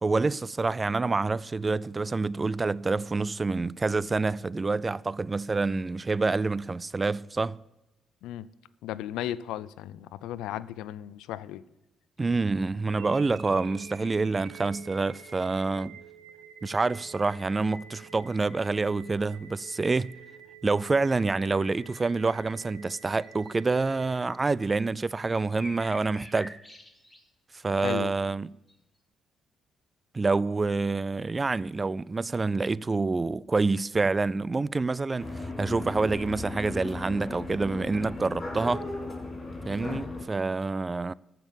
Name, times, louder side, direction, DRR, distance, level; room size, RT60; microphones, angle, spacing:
voice 1, 0.0-7.6 12.2-16.0 16.6-20.1 20.6-26.5 27.6-28.5 30.1-38.8 39.7-41.1, right 3 dB, 30° right, 0.3 m, -27 dB
voice 2, 8.8-11.6 27.8-28.1 39.8-40.0, left 12 dB, 80° left, 0.4 m, -35 dB
sound 1, 12.9-24.9, right 6 dB, 85° right, 1.5 m, -49 dB
sound 2, 23.2-23.8 24.2-24.3 25.3-27.2 27.8-27.9 28.7-28.8, left 1 dB, 5° left, 2.0 m, -45 dB
sound 3, 35.2-40.2, left 2 dB, 40° left, 4.7 m, -36 dB
14.5 x 5.9 x 7.1 m
supercardioid pair, 60°, 0 cm